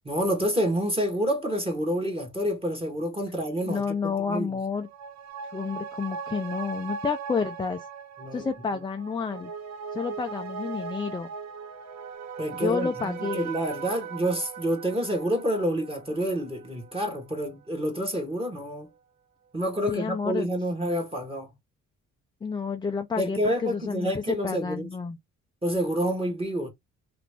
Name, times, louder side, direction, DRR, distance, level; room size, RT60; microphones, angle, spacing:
voice 1, 0.0-4.6 8.2-8.5 12.4-18.9 19.5-21.5 23.2-24.9 25.6-26.7, equal, 20° right, 1.3 m, -28 dB
voice 2, 3.7-4.9 5.5-7.9 8.3-9.5 9.9-11.3 12.5-13.6 19.9-20.5 22.4-25.2, left 5 dB, 15° left, 0.4 m, -30 dB
sound 1, 4.7-17.5 17.9-18.0, right 6 dB, 65° right, 0.8 m, -39 dB
2.9 x 2.5 x 3.3 m
cardioid pair, 90°, 30 cm